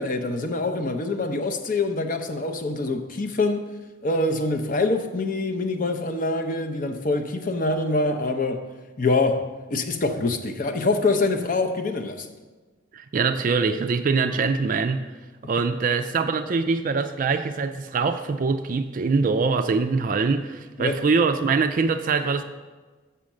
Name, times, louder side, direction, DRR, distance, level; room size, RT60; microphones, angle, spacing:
voice 1, 0.0-3.7 4.0-8.6 9.0-12.3 20.8-21.0, left 2 dB, 40° left, 0.6 m, -25 dB
voice 2, 12.9-15.1 15.5-22.4, right 4 dB, 40° right, 0.3 m, -23 dB
6.4 x 5.6 x 7.2 m
head